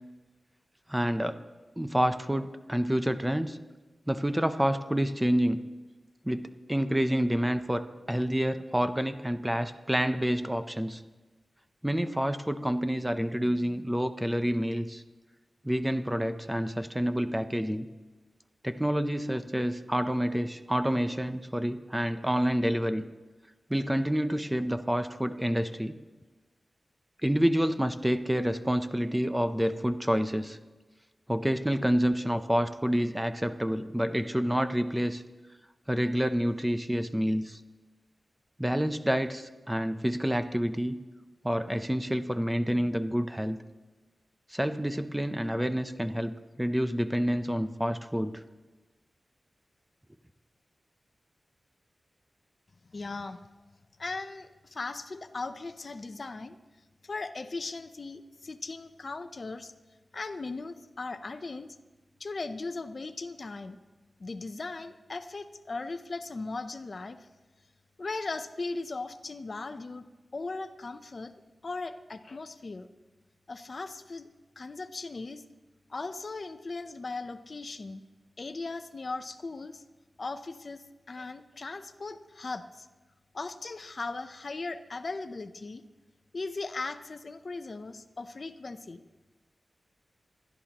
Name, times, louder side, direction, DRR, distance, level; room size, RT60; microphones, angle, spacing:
voice 1, 0.9-1.4 1.8-3.6 4.1-5.6 6.2-11.0 11.8-15.0 15.6-17.9 18.6-23.0 23.7-26.0 27.2-30.6 31.3-35.2 35.9-37.6 38.6-41.0 41.4-43.6 44.5-48.4, equal, 10° right, 10 dB, 0.6 m, -28 dB
voice 2, 52.9-53.4 54.0-56.6 57.0-59.7 60.1-61.8 62.2-63.8 64.2-67.3 68.0-70.1 70.3-71.3 71.6-72.9 73.5-74.3 74.6-75.4 75.9-78.0 78.4-79.8 80.2-82.9 83.3-85.8 86.3-89.0, left 3 dB, 45° left, 10 dB, 0.6 m, -38 dB
27.0 x 12.0 x 3.0 m, 1.2 s
wide cardioid pair, 110°, 0 cm